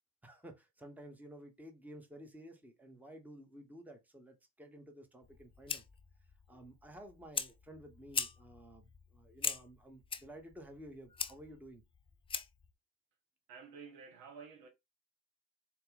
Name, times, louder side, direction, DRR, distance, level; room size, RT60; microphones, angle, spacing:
voice 1, 0.2-5.8 6.5-11.8, right 1 dB, 5° right, 1.1 m, -53 dB
Fire, 5.2-12.7, left 6 dB, 15° left, 0.4 m, -42 dB
voice 2, 13.5-14.7, right 5 dB, 65° right, 1.2 m, -51 dB
4.1 x 2.3 x 4.0 m
hypercardioid pair, 70°, 40 cm